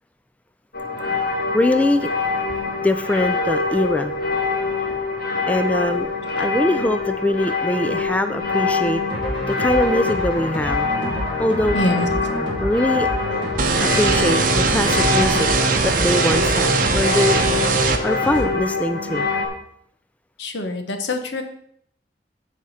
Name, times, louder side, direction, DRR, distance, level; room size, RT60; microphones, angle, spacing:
sound 1, 0.7-19.5, left 4 dB, 60° left, 1.9 m, -25 dB
voice 1, 1.5-2.1 2.8-4.1 5.5-6.1 6.4-9.0 9.4-10.9 11.2-11.9 12.6-13.1 13.8-15.5 15.8-17.4 18.0-19.3, left 1 dB, 10° left, 9 dB, 0.4 m, -22 dB
sound 2, 9.1-18.4, equal, 30° left, 2.7 m, -28 dB
voice 2, 11.7-12.1 20.4-21.4, left 2 dB, 85° left, 6 dB, 1.2 m, -24 dB
sound 3, 13.6-18.0, right 4 dB, 50° right, 0.8 m, -20 dB
14.0 x 4.9 x 4.2 m, 0.68 s
head